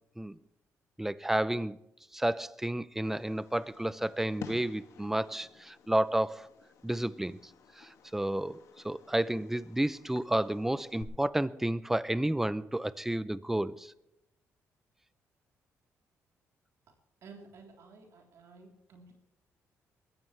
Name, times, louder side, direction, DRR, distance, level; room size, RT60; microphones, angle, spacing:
voice 1, 1.0-1.8 2.1-6.5 6.8-7.4 7.8-8.6 8.8-13.9, right 1 dB, 5° right, 0.5 m, -31 dB
Fireworks, 3.0-11.0, left 7 dB, 75° left, 2.1 m, -53 dB
voice 2, 17.2-19.1, right 4 dB, 65° right, 3.6 m, -53 dB
21.5 x 14.5 x 3.3 m
cardioid pair, 110°, 5 cm